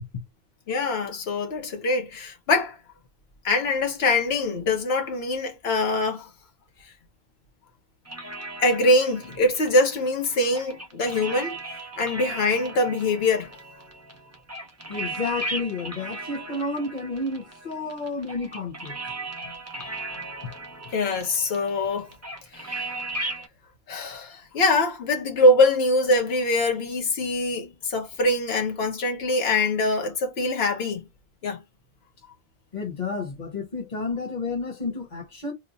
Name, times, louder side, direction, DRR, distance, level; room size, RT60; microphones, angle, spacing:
voice 1, 0.7-2.8 3.4-6.3 8.6-11.6 12.0-13.5 20.9-22.1 22.5-23.0 23.9-31.0 31.4-31.6, left 2 dB, 80° left, 1.2 m, -23 dB
sound 1, 8.1-23.5, right 2 dB, 20° right, 0.7 m, -37 dB
voice 2, 14.9-19.0 32.7-35.5, left 3 dB, 45° left, 1.2 m, -31 dB
3.1 x 2.2 x 3.8 m
omnidirectional pair, 1.0 m